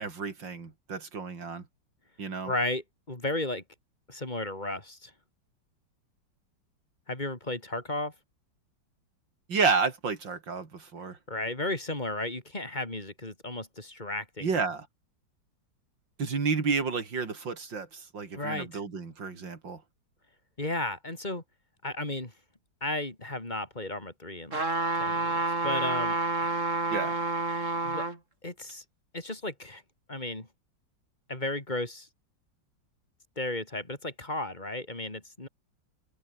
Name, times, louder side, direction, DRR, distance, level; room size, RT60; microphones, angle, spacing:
voice 1, 0.0-1.6 2.2-2.5 9.5-11.2 14.4-14.9 16.2-19.8 26.9-27.2, right 5 dB, 80° right, 3.7 m, -31 dB
voice 2, 2.4-3.6 4.1-5.1 7.1-8.1 11.3-14.5 18.3-18.8 20.6-21.4 21.8-22.3 22.8-24.6 24.9-26.7 27.8-28.0 28.4-28.8 29.1-29.8 30.1-30.5 31.3-32.1 33.4-35.5, left 2 dB, 25° left, 3.4 m, -34 dB
sound 1, 24.5-28.2 28.7-28.8, right 3 dB, 40° right, 4.3 m, -29 dB
open air
omnidirectional pair, 2.0 m